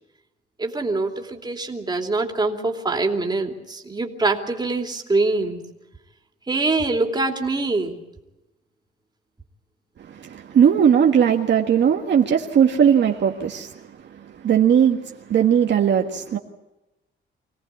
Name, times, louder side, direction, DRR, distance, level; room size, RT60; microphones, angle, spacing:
voice 1, 0.6-5.6 6.5-8.0, right 3 dB, 20° right, 2 dB, 3.0 m, -24 dB
voice 2, 10.0-16.4, right 8 dB, 60° right, 2 dB, 1.6 m, -19 dB
25.5 x 17.5 x 8.4 m, 0.98 s
cardioid pair, 115°, 21 cm